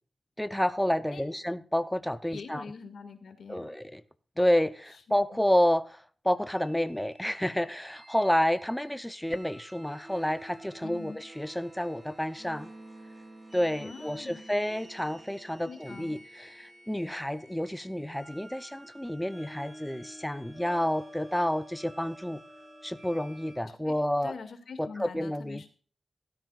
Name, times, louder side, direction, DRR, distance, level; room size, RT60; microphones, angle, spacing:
voice 1, 0.4-2.6 3.5-4.0 4.4-12.7 13.5-22.4 22.8-24.3 24.8-25.7, equal, 5° left, 0.6 m, -29 dB
voice 2, 2.3-3.7 5.1-5.4 10.8-11.2 13.8-14.4 15.7-16.2 23.7-23.9 24.2-25.7, left 5 dB, 80° left, 2.0 m, -44 dB
sound 1, 6.5-23.6, right 1 dB, 25° right, 4.6 m, -50 dB
15.5 x 13.0 x 2.4 m
wide cardioid pair, 120°, 0 cm